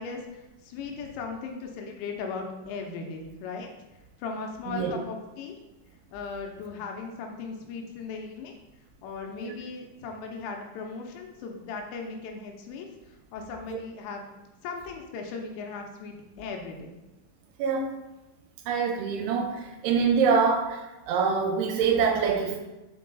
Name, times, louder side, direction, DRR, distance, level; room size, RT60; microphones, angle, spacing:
voice 1, 0.0-3.7 4.2-5.6 6.1-8.5 9.0-14.2 14.6-16.9, left 4 dB, 80° left, 2 dB, 2.9 m, -37 dB
voice 2, 17.6-17.9 18.7-22.6, right 6 dB, 85° right, 3 dB, 3.1 m, -25 dB
6.0 x 4.7 x 3.8 m, 1.0 s
omnidirectional pair, 5.4 m